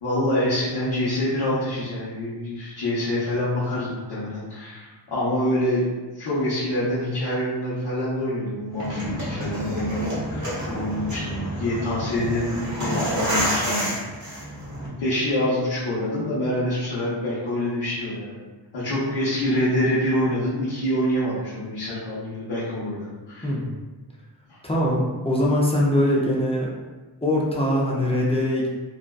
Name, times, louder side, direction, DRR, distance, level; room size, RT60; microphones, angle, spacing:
voice 1, 0.0-5.9 6.1-14.5 14.8-18.4 18.7-23.5 24.5-24.6, left 1 dB, 65° left, -11 dB, 0.8 m, -26 dB
sound 1, 8.7-14.9, equal, 40° right, 0.9 m, -28 dB
voice 2, 24.6-26.7 27.2-28.7, left 1 dB, 15° left, -4 dB, 0.3 m, -22 dB
2.5 x 2.2 x 2.2 m, 1.2 s
wide cardioid pair, 115°, 45 cm